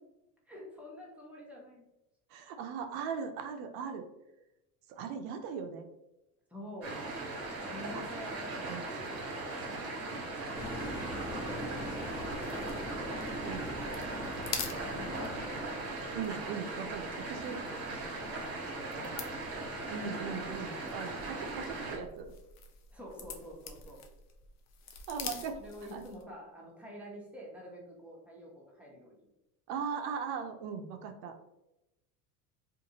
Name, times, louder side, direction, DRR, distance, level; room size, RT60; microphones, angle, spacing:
voice 1, 0.4-1.8 6.5-7.1 7.7-13.1 14.6-15.8 17.1-19.4 22.9-24.1 25.3-29.3, equal, 5° right, -4 dB, 0.9 m, -49 dB
voice 2, 2.3-4.1 4.9-5.9 7.9-8.0 8.7-8.8 13.4-13.7 16.1-17.6 19.9-22.3 25.1-25.6 25.9-26.0 29.7-31.4, right 6 dB, 60° right, 6 dB, 0.5 m, -39 dB
sound 1, 6.8-22.0, right 2 dB, 35° right, 1.1 m, -39 dB
sound 2, 10.5-15.6, left 1 dB, 20° left, 1.2 m, -41 dB
sound 3, 11.9-26.3, left 6 dB, 40° left, 0.5 m, -47 dB
2.6 x 2.5 x 2.7 m, 0.91 s
supercardioid pair, 95°, 44 cm